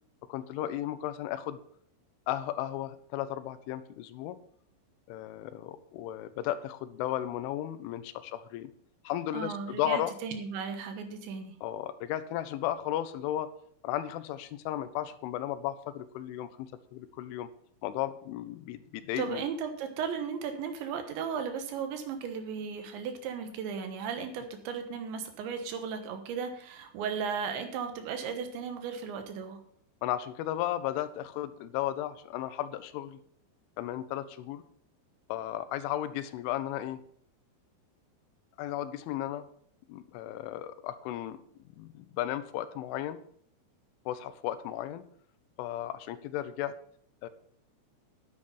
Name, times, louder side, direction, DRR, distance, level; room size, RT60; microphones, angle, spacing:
voice 1, 0.3-1.6 2.3-4.4 5.1-8.7 9.0-10.1 11.6-13.5 13.8-17.5 17.8-19.4 30.0-33.2 33.8-34.6 35.3-37.0 38.6-39.5 39.9-41.4 41.8-43.2 44.1-45.0 45.6-46.8 47.2-47.3, left 12 dB, 85° left, 13 dB, 3.3 m, -34 dB
voice 2, 9.3-11.6 19.2-29.6, right 6 dB, 75° right, 7 dB, 3.5 m, -35 dB
10.0 x 8.7 x 5.4 m, 0.62 s
omnidirectional pair, 5.4 m